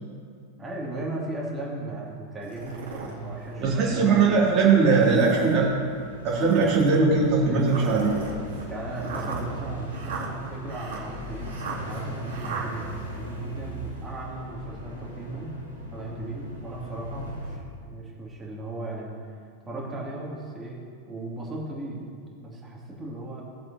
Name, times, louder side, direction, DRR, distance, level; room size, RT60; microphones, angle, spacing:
voice 1, 0.6-4.3 4.7-5.7 8.7-11.5 11.9-12.8 13.1-15.5 15.9-19.2 19.6-20.8 21.1-22.1 22.4-23.4, right 2 dB, 15° right, -4 dB, 2.6 m, -36 dB
sound 1, 2.4-3.1 3.8-3.9 4.9-5.6 6.3-7.0 7.7-12.7, right 5 dB, 60° right, 2.6 m, -36 dB
sound 2, 2.5-17.6, equal, 90° left, 1.7 m, -40 dB
voice 2, 3.6-5.7 6.2-8.1, right 4 dB, 30° right, -5 dB, 2.7 m, -20 dB
17.5 x 7.5 x 2.9 m, 2.2 s
figure-of-eight pair, 90°, 0 cm